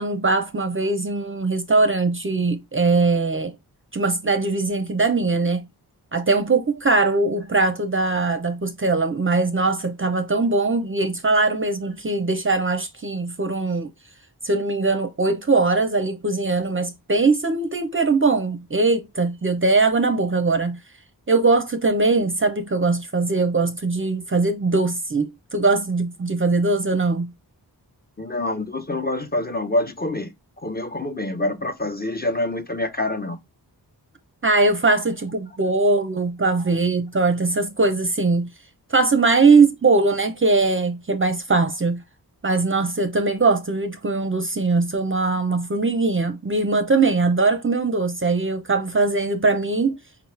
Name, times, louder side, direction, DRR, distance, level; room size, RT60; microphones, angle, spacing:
voice 1, 0.0-3.6 3.9-5.7 6.1-13.9 14.4-20.8 21.3-27.3 34.4-38.5 38.9-42.0 42.4-50.0, right 3 dB, 30° right, 0.5 m, -21 dB
voice 2, 28.2-30.3 30.6-33.4, left 2 dB, 25° left, 0.6 m, -26 dB
4.9 x 2.3 x 3.1 m
wide cardioid pair, 90°, 40 cm